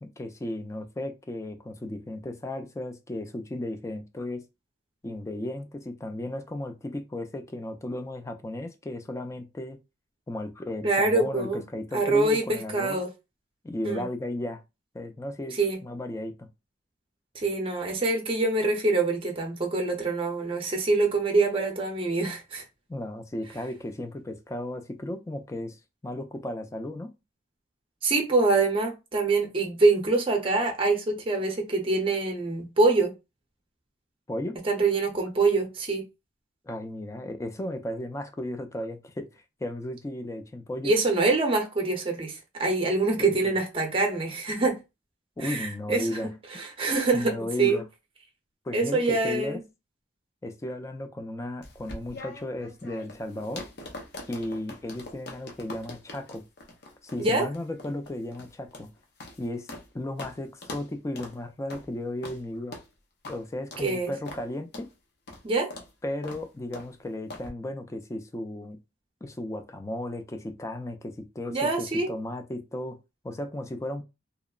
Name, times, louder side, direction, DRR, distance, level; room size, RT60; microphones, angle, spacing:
voice 1, 0.0-4.4 5.0-9.8 10.3-13.0 13.6-14.6 14.9-16.5 22.9-25.8 26.0-27.1 34.3-34.6 36.6-40.9 43.2-43.6 45.4-46.3 47.1-47.8 48.6-49.6 50.4-53.7 54.3-56.4 57.0-58.9 59.4-62.8 63.3-64.9 66.0-68.8 69.2-73.0 73.2-74.0, left 1 dB, 15° left, 0.3 m, -35 dB
voice 2, 10.8-11.6 11.9-13.1 13.8-14.0 15.6-15.8 17.3-22.6 28.0-33.1 34.6-36.0 40.8-44.8 45.4-46.2 46.5-47.8 48.7-49.6 57.2-57.5 63.8-64.1 65.4-65.7 71.5-72.1, right 3 dB, 30° right, 0.6 m, -25 dB
sound 1, 51.6-59.9 60.2-60.3 60.6-60.9 61.2-61.3 61.7-61.9 62.2-62.4 62.7-62.9 63.2-63.4 63.7-63.9 64.3-64.4 64.7-64.9 65.3-65.4 65.7-65.9 66.2-66.4 66.7-66.9 67.3-67.5, left 2 dB, 60° left, 0.6 m, -42 dB
2.8 x 2.0 x 2.3 m
head